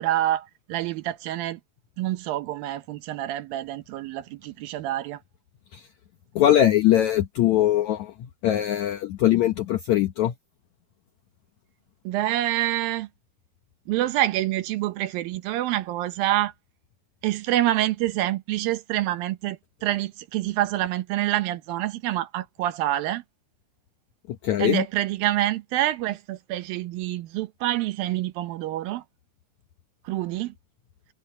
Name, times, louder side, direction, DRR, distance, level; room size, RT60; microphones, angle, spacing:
voice 1, 0.0-1.6 2.0-5.2 12.1-13.1 13.9-16.5 17.2-23.2 24.6-29.0 30.1-30.5, right 14 dB, 75° right, 2.4 m, -27 dB
voice 2, 6.3-8.1 8.4-10.3 24.4-24.8, left 12 dB, 80° left, 1.6 m, -21 dB
omnidirectional pair, 4.6 m